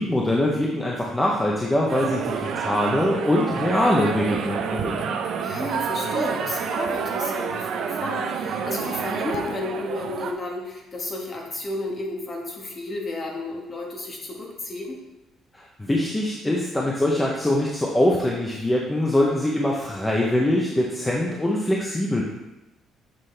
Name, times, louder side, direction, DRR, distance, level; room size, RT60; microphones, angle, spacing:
voice 1, 0.0-5.1 15.5-22.2, left 1 dB, 10° left, -2 dB, 0.7 m, -23 dB
sound 1, 1.9-10.3, right 6 dB, 55° right, 0.6 m, -28 dB
voice 2, 5.4-15.0, left 2 dB, 25° left, -1 dB, 1.4 m, -32 dB
7.6 x 6.0 x 3.3 m, 0.97 s
cardioid pair, 165°, 0 cm